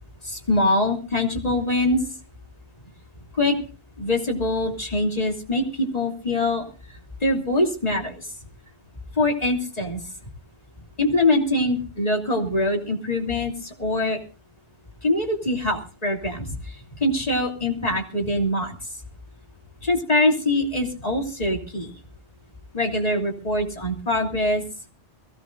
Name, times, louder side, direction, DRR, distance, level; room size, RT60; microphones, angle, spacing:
voice 1, 0.2-2.0 3.3-3.5 4.0-6.6 7.2-8.2 9.2-10.0 11.0-14.2 15.0-16.5 17.0-18.7 19.8-21.9 22.7-24.6, left 1 dB, 35° left, 1 dB, 3.1 m, -23 dB
22.0 x 16.5 x 2.6 m, 0.36 s
omnidirectional pair, 1.1 m